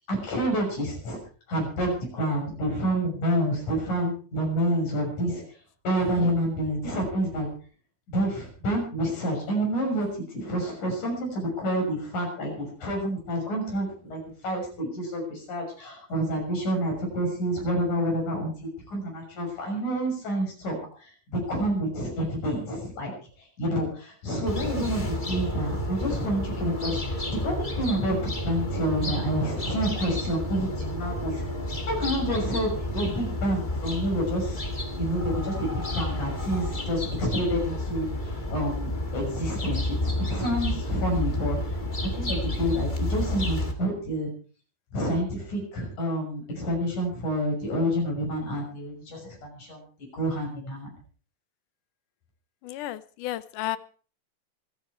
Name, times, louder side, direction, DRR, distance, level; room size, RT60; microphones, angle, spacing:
voice 1, 0.1-1.2 1.5-5.4 5.8-7.5 8.1-10.1 10.3-18.5 18.9-23.1 23.6-31.4 31.9-34.6 35.0-41.6 42.1-44.3 44.9-49.8 50.1-50.9, equal, 70° left, 1 dB, 7.7 m, -28 dB
sound 1, 24.5-43.7, left 1 dB, 20° left, 1.7 m, -30 dB
voice 2, 52.6-53.8, left 14 dB, 85° left, 15 dB, 2.4 m, -32 dB
25.5 x 9.1 x 4.6 m, 0.40 s
omnidirectional pair, 3.5 m